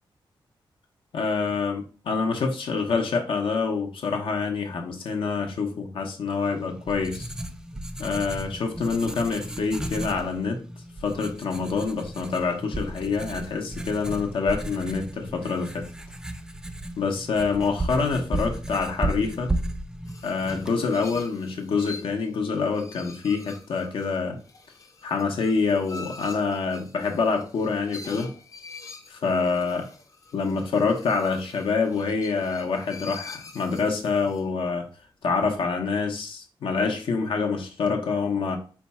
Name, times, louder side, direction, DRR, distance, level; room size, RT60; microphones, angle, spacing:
voice 1, 1.1-7.3 8.0-10.6 11.0-15.9 17.0-19.5 20.2-24.4 25.0-28.3 29.1-29.9 30.3-34.9 35.2-38.6, left 4 dB, 80° left, 3 dB, 0.9 m, -26 dB
Writing, 6.5-21.3, right 1 dB, 5° right, 0.3 m, -34 dB
sound 1, 20.0-34.5, left 3 dB, 40° left, 0.6 m, -45 dB
4.4 x 2.3 x 4.1 m, 0.37 s
wide cardioid pair, 135°, 9 cm